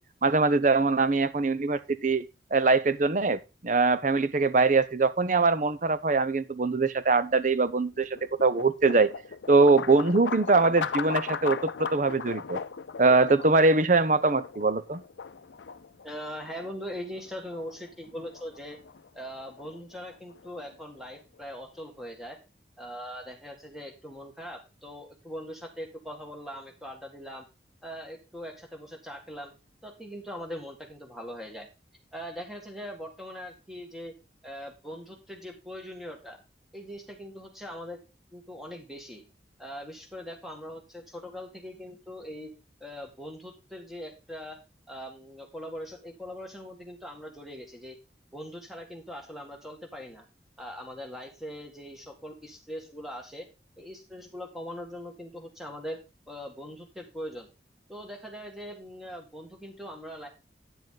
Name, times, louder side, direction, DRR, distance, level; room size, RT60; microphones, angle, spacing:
voice 1, 0.2-2.2 2.5-9.1 9.5-12.6 13.0-15.0, right 3 dB, 45° right, 0.6 m, -23 dB
sound 1, 7.3-21.4, left 6 dB, 90° left, 0.6 m, -38 dB
voice 2, 16.0-18.8 19.1-22.4 22.8-27.5 27.8-29.5 29.8-31.7 32.1-34.1 34.4-36.4 36.7-38.0 38.3-39.2 39.6-42.5 42.8-44.6 44.9-48.0 48.3-50.2 50.6-53.5 53.8-56.0 56.3-57.5 57.9-60.3, equal, ahead, 2.0 m, -41 dB
9.2 x 7.6 x 3.9 m
head